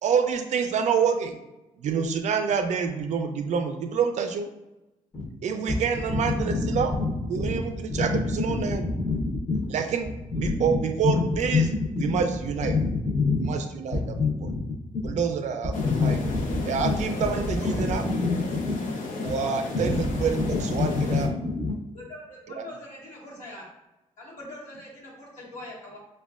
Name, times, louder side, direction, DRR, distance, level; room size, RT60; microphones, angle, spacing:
voice 1, 0.0-1.4 1.8-4.5 5.4-6.9 7.3-8.9 9.7-11.7 12.0-12.8 13.4-14.0 15.0-16.2 16.7-18.0 19.2-21.3 22.5-22.7, right 6 dB, 60° right, 6 dB, 0.4 m, -27 dB
voice 2, 8.5-9.2 9.5-9.6 10.4-10.8 11.0-11.2 11.5-11.6 12.7-13.5 14.1-14.5 16.0-16.4 16.8-16.9 17.8-18.7 19.8-20.0 20.9-21.8, left 4 dB, 25° left, -5 dB, 0.7 m, -25 dB
sound 1, 15.7-21.3, left 3 dB, 80° left, 0.6 m, -33 dB
voice 3, 21.9-23.7 24.2-26.0, left 1 dB, 65° left, -6 dB, 1.0 m, -42 dB
5.1 x 2.2 x 2.3 m, 0.98 s
wide cardioid pair, 170°, 13 cm